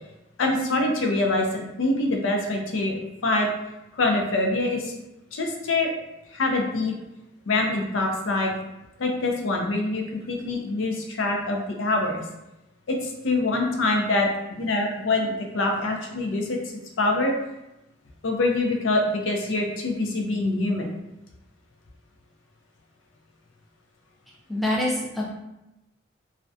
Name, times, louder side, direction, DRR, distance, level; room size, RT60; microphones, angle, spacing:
voice 1, 0.4-3.0 3.2-3.5 3.9-4.9 5.3-5.9 6.3-6.9 7.5-8.5 9.0-12.2 12.9-16.6 17.0-17.3 18.2-20.9, left 2 dB, 85° left, 1 dB, 0.4 m, -25 dB
voice 2, 24.5-25.3, left 1 dB, ahead, -4 dB, 0.3 m, -25 dB
2.3 x 2.1 x 2.6 m, 0.92 s
head